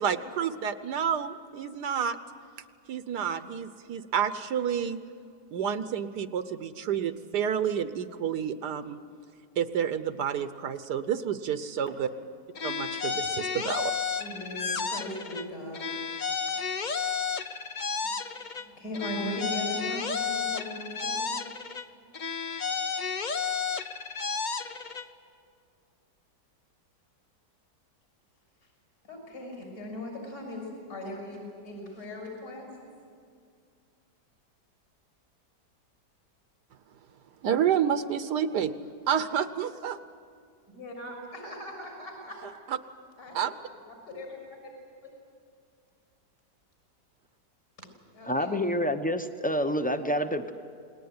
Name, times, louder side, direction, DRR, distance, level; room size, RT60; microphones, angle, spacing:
voice 1, 0.0-2.2 2.9-5.0 5.5-9.0 9.6-12.1 12.6-13.9 37.4-38.7 39.1-40.0 42.4-42.8 43.3-43.5, right 8 dB, 70° right, 12 dB, 1.4 m, -29 dB
sound 1, 12.5-15.5 15.7-18.7 18.9-21.9 22.1-25.1, left 5 dB, 40° left, 0.7 m, -32 dB
voice 2, 14.2-15.9 16.5-16.6 18.6-21.4 29.0-32.7 40.7-42.5 43.2-43.4 44.1-44.3 47.8-47.9 48.1-48.5, left 1 dB, 60° left, 1 dB, 6.9 m, -38 dB
voice 3, 48.2-50.5, equal, 10° left, 8 dB, 0.6 m, -28 dB
28.5 x 20.0 x 9.6 m, 2.2 s
omnidirectional pair, 1.8 m